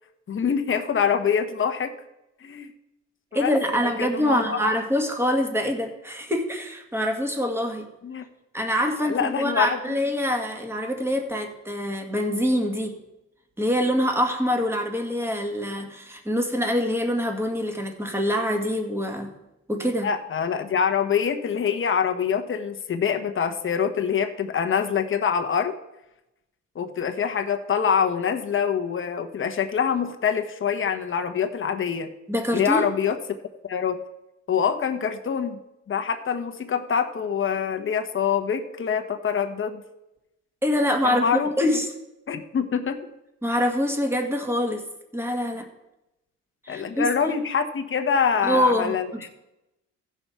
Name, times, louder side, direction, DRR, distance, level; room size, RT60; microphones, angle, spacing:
voice 1, 0.3-2.0 2.4-2.7 3.3-4.6 8.0-8.3 9.0-10.0 20.0-25.7 26.7-32.1 32.5-33.2 33.6-34.0 34.5-35.6 35.9-39.8 41.0-41.5 42.3-43.1 46.7-49.3, left 7 dB, 40° left, 6 dB, 1.1 m, -25 dB
voice 2, 3.3-7.9 8.5-13.0 13.6-19.3 19.7-20.1 32.3-32.8 40.6-41.9 43.4-44.9 45.1-45.7 46.6-47.3 48.4-49.3, equal, 10° right, 3 dB, 1.8 m, -25 dB
15.5 x 5.7 x 4.7 m, 0.92 s
cardioid pair, 90°, 30 cm